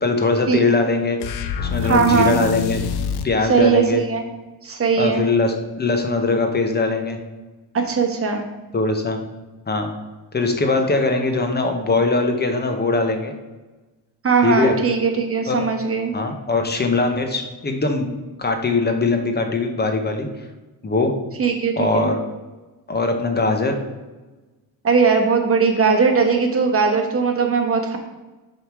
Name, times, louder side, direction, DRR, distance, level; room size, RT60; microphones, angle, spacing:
voice 1, 0.0-1.2 1.6-2.8 3.2-4.0 5.0-7.2 8.7-9.2 9.7-9.9 10.3-13.3 14.4-14.7 15.5-15.6 16.1-18.1 18.4-20.3 20.8-21.1 21.8-22.1 22.9-23.8, left 3 dB, 25° left, 5 dB, 0.7 m, -21 dB
sound 1, 1.2-3.4, left 7 dB, 60° left, 0.6 m, -26 dB
voice 2, 1.8-2.4 3.5-4.2 4.6-5.2 7.7-8.4 14.2-16.1 21.4-22.1 24.8-28.0, right 5 dB, 30° right, 3 dB, 1.0 m, -19 dB
7.6 x 3.6 x 6.0 m, 1.2 s
wide cardioid pair, 180°, 44 cm